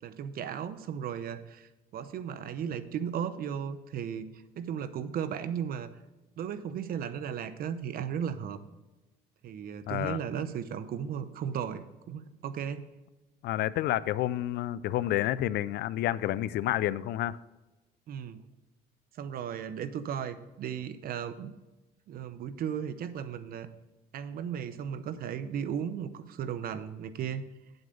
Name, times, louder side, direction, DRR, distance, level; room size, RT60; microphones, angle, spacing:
voice 1, 0.0-4.3 4.6-5.9 6.4-8.6 9.4-12.8 18.1-18.4 19.1-21.5 22.1-23.7 24.1-27.4, right 8 dB, 60° right, 12 dB, 0.9 m, -35 dB
voice 2, 9.9-10.2 13.4-17.4, left 14 dB, 75° left, 18 dB, 0.5 m, -29 dB
9.2 x 7.9 x 3.9 m, 1.1 s
cardioid pair, 110°, 17 cm